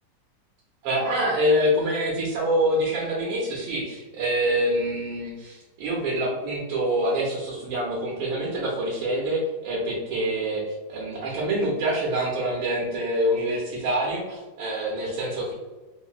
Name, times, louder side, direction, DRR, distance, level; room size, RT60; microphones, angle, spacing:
voice 1, 0.8-15.5, right 1 dB, 85° right, -4 dB, 1.6 m, -26 dB
3.8 x 2.8 x 2.4 m, 1.2 s
omnidirectional pair, 2.2 m